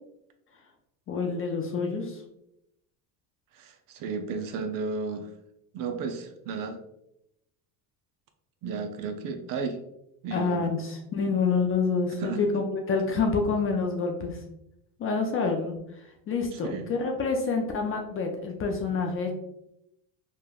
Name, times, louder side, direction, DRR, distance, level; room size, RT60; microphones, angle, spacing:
voice 1, 1.1-2.2 10.3-14.4 15.0-15.7 16.3-19.3, left 4 dB, 30° left, 2 dB, 0.4 m, -27 dB
voice 2, 3.5-5.3 5.7-6.8 8.6-9.8 10.2-10.7 12.2-12.4 16.5-16.9, right 4 dB, 45° right, 6 dB, 0.4 m, -33 dB
3.2 x 2.2 x 2.3 m, 0.81 s
supercardioid pair, 85°, 47 cm